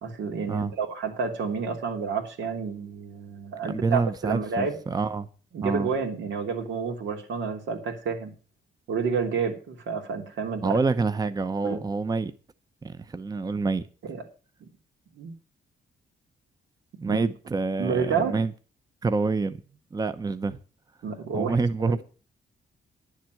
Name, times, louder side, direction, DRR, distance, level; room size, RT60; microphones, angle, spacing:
voice 1, 0.0-4.8 5.5-8.3 8.9-10.7 11.6-11.8 14.0-14.2 14.6-14.7 15.2-15.3 17.1-17.3 17.8-18.4 21.0-21.6 21.9-22.0, right 5 dB, 90° right, 3.1 m, -29 dB
voice 2, 3.7-5.3 5.6-5.9 10.6-12.3 12.8-13.8 17.0-18.5 19.0-19.6 19.9-20.6 21.3-22.0, right 4 dB, 20° right, 0.7 m, -27 dB
10.5 x 7.5 x 7.7 m
cardioid pair, 115°, 18 cm